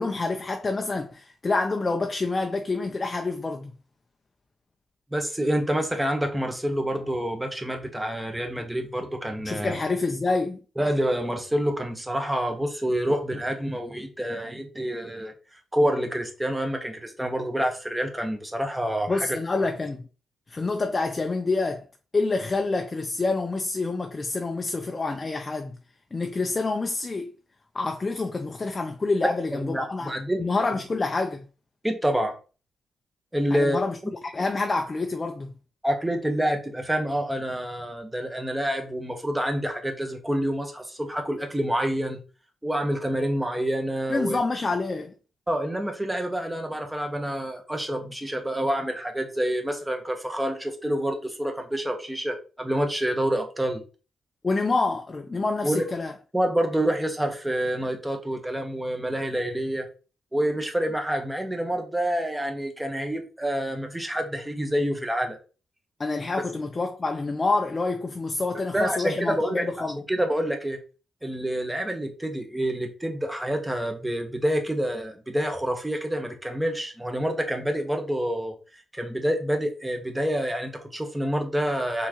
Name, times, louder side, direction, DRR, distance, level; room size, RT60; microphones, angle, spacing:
voice 1, 0.0-3.7 9.4-10.6 19.1-20.1 20.5-21.8 22.1-25.7 26.1-27.3 27.7-30.1 30.4-31.5 33.5-34.0 34.2-35.5 44.1-45.1 54.4-56.1 66.0-70.0, left 3 dB, 35° left, 0.6 m, -27 dB
voice 2, 5.1-9.8 10.8-15.3 15.7-19.3 29.5-30.4 31.8-32.4 33.3-33.8 35.8-42.2 42.6-44.4 45.5-53.8 55.6-55.8 56.3-59.9 60.3-65.4 68.7-70.8 71.2-78.5 78.9-82.1, equal, 10° right, 1.2 m, -27 dB
4.4 x 3.6 x 3.0 m
cardioid pair, 60°, 0 cm